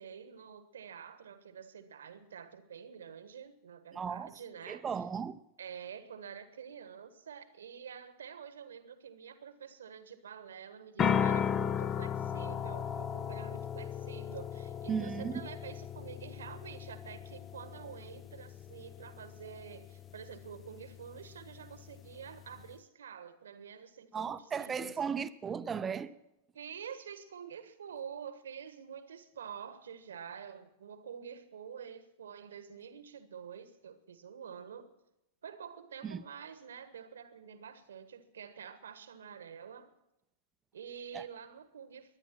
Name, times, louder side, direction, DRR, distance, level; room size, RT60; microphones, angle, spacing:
voice 1, 0.0-5.0 5.6-25.0 26.5-34.9 35.4-39.9 40.7-42.2, right 7 dB, 70° right, 1.3 m, -48 dB
voice 2, 3.9-4.3 4.7-5.4 14.9-15.4 24.1-26.1 36.0-36.2 41.1-41.2, right 6 dB, 20° right, 0.7 m, -36 dB
sound 1, 11.0-22.7, left 8 dB, 30° left, 0.8 m, -37 dB
22.5 x 9.9 x 6.0 m
figure-of-eight pair, 95°, 0 cm